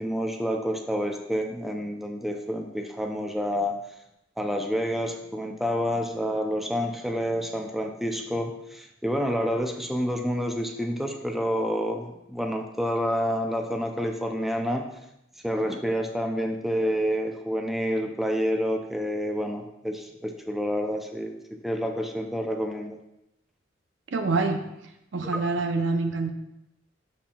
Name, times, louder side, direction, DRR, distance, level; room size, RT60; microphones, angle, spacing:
voice 1, 0.0-3.8 4.4-14.9 15.4-23.0 25.2-25.4, equal, ahead, 3 dB, 0.4 m, -28 dB
voice 2, 24.1-24.6 25.1-26.3, right 3 dB, 80° right, 6 dB, 0.7 m, -26 dB
11.5 x 4.2 x 2.3 m, 0.84 s
head